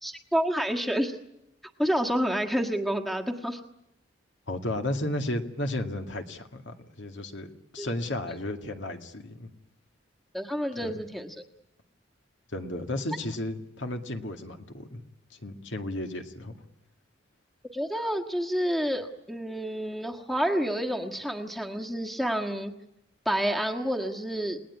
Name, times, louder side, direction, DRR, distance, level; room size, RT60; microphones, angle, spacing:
voice 1, 0.0-1.2 1.8-3.6 7.8-7.9 10.3-11.3 17.7-22.7 23.2-24.6, equal, ahead, 3 dB, 1.5 m, -29 dB
voice 2, 4.5-9.5 10.8-10.9 12.5-15.0 15.3-16.5, left 1 dB, 65° left, 5 dB, 2.1 m, -33 dB
30.0 x 18.5 x 9.8 m, 0.89 s
head